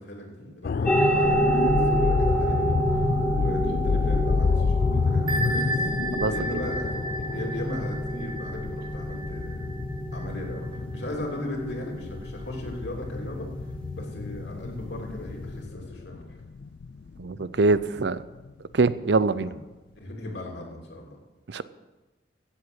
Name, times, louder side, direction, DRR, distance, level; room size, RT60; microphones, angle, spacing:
voice 1, 0.0-5.9 6.3-9.7 10.1-13.5 13.9-16.4 19.5-19.6 20.0-21.2, left 1 dB, 75° left, 3.1 m, -37 dB
sound 1, 0.6-18.5 18.9-19.1, left 5 dB, 55° left, 0.3 m, -29 dB
sound 2, 0.8-15.6, right 1 dB, 5° left, 1.5 m, -29 dB
Bell, 5.3-10.7, right 1 dB, 25° right, 0.8 m, -34 dB
voice 2, 17.2-18.2 18.7-19.5 21.5-21.6, right 3 dB, 75° right, 0.6 m, -23 dB
15.5 x 7.8 x 6.3 m
head